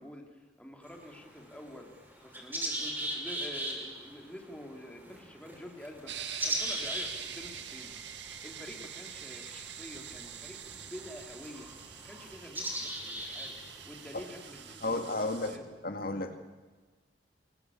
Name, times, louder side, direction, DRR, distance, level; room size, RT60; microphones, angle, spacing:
voice 1, 0.0-1.9 2.2-6.1 6.4-7.9 8.4-11.7 12.0-13.6 13.8-15.7, left 1 dB, 5° left, 2 dB, 3.2 m, -48 dB
sound 1, 0.8-14.7, right 1 dB, 10° right, 6.2 m, -40 dB
sound 2, 6.1-15.6, right 8 dB, 80° right, 2.0 m, -44 dB
voice 2, 14.8-15.5 15.8-16.4, left 2 dB, 55° left, 6 dB, 2.2 m, -32 dB
25.5 x 22.0 x 8.6 m, 1.3 s
head